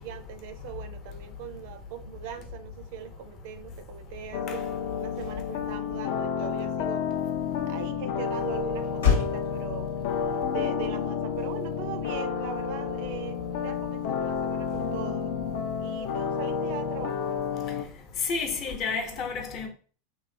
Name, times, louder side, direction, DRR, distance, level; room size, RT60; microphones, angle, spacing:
voice 1, 0.0-7.0 7.7-9.9 10.2-15.4 15.8-17.3, right 8 dB, 65° right, 0.4 m, -41 dB
sound 1, 4.3-17.9, left 7 dB, 60° left, 0.3 m, -30 dB
Motor vehicle (road), 8.9-13.6, left 7 dB, 85° left, 1.1 m, -34 dB
voice 2, 18.3-19.7, left 4 dB, 45° left, 0.7 m, -30 dB
3.0 x 2.1 x 2.6 m
hypercardioid pair, 95°, 0 cm